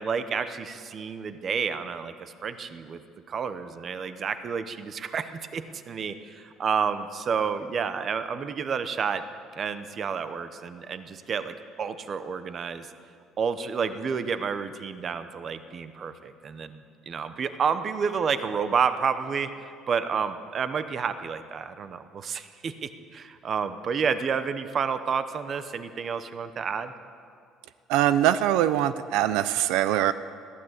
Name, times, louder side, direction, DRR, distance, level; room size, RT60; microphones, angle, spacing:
voice 1, 0.0-3.0 3.3-9.2 9.6-12.9 13.4-26.9, right 6 dB, 30° right, 11 dB, 0.9 m, -30 dB
voice 2, 27.9-30.1, right 12 dB, 80° right, 13 dB, 0.6 m, -22 dB
21.5 x 15.5 x 8.2 m, 2.3 s
cardioid pair, 180°, 0 cm